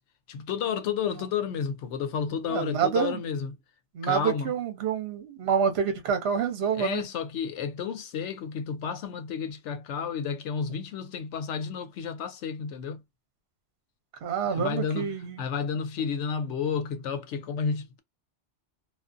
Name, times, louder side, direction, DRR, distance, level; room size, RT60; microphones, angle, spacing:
voice 1, 0.3-3.6 4.0-4.5 6.7-13.0 14.4-18.0, left 6 dB, 80° left, 0.9 m, -31 dB
voice 2, 2.5-3.2 3.9-7.0 14.2-15.4, right 7 dB, 65° right, 1.0 m, -27 dB
2.4 x 2.4 x 2.4 m
omnidirectional pair, 1.2 m